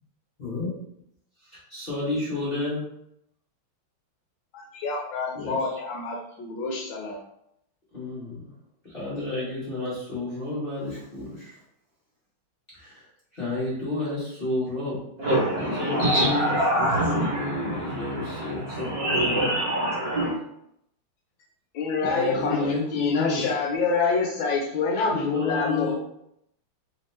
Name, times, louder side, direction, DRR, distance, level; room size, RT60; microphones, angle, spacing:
voice 1, 0.4-0.8 1.4-2.8 5.3-5.8 7.9-8.5 8.8-11.6 12.7-13.0 13.3-15.0 15.6-16.5 16.8-19.6 22.0-23.5 25.1-25.9, left 2 dB, 35° left, -9 dB, 1.0 m, -31 dB
voice 2, 4.5-7.2 21.7-25.9, left 4 dB, 75° left, -1 dB, 1.3 m, -27 dB
voice 3, 15.2-20.4, right 1 dB, 55° right, -5 dB, 1.4 m, -25 dB
3.5 x 2.8 x 3.1 m, 0.77 s
omnidirectional pair, 2.3 m